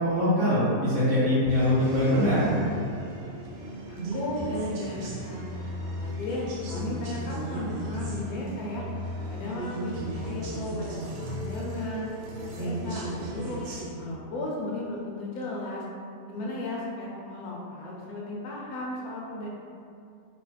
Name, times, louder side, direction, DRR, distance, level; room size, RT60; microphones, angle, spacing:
voice 1, 0.0-2.4, left 1 dB, 40° right, -10 dB, 1.1 m, -23 dB
sound 1, 1.5-13.9, right 1 dB, 70° right, 0.6 m, -35 dB
voice 2, 3.9-8.8 9.3-12.1 12.4-13.6 14.0-15.8 16.3-19.5, left 1 dB, 75° left, -4 dB, 1.0 m, -35 dB
3.0 x 2.1 x 3.2 m, 2.4 s
omnidirectional pair, 1.6 m